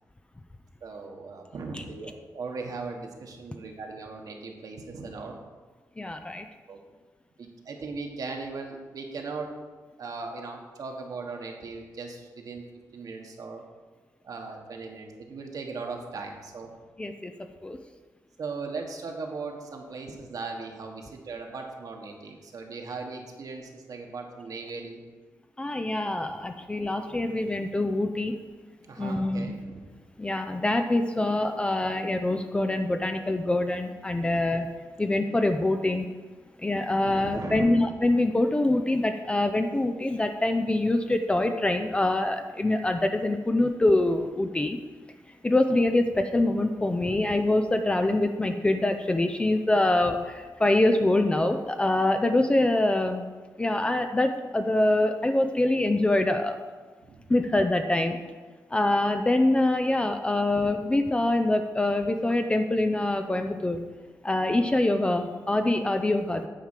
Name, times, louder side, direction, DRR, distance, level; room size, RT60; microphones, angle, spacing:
voice 1, 0.8-5.4 6.7-6.8 7.4-9.5 10.0-12.6 12.9-13.6 14.2-16.7 18.4-25.0 28.9-29.9 34.2-34.5 37.0-37.9 46.7-47.1 57.0-57.2 60.4-60.5, right 4 dB, 65° right, 2 dB, 1.4 m, -38 dB
voice 2, 6.0-6.5 17.0-17.3 17.6-17.8 25.6-28.3 29.0-29.5 30.2-34.7 35.0-36.1 36.6-44.8 45.4-53.2 53.6-56.6 57.3-58.2 58.7-63.8 64.2-66.5, left 2 dB, 15° left, 6 dB, 0.4 m, -25 dB
9.3 x 4.9 x 7.3 m, 1.3 s
wide cardioid pair, 175°, 7 cm